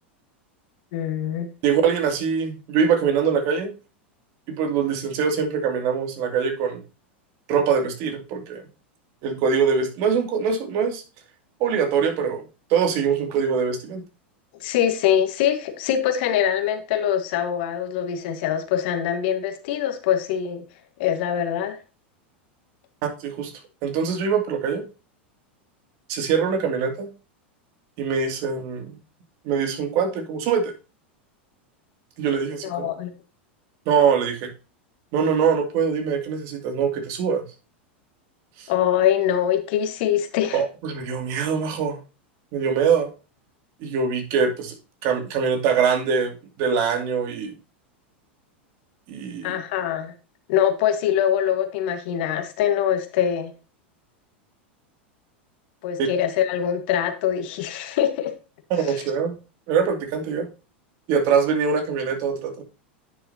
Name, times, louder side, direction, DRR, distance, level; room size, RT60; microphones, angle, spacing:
voice 1, 0.9-1.5 14.6-20.6 21.0-21.8 32.6-33.1 38.7-40.6 49.4-50.1 50.5-53.5 55.8-58.3 58.8-59.0, left 10 dB, 65° left, 7 dB, 1.6 m, -23 dB
voice 2, 1.6-3.7 4.5-6.8 7.5-8.6 9.2-11.0 11.6-12.4 12.7-14.0 23.0-23.5 23.8-24.8 26.1-27.1 28.0-29.0 29.4-30.7 32.2-32.9 33.9-34.5 35.1-37.4 38.6-38.7 40.5-42.0 42.5-43.1 43.8-44.7 45.0-47.5 49.1-49.6 56.0-56.1 58.7-59.3 59.7-60.5 61.1-62.6, right 6 dB, 55° right, 5 dB, 2.5 m, -23 dB
10.0 x 6.6 x 2.8 m, 0.32 s
hypercardioid pair, 105°, 6 cm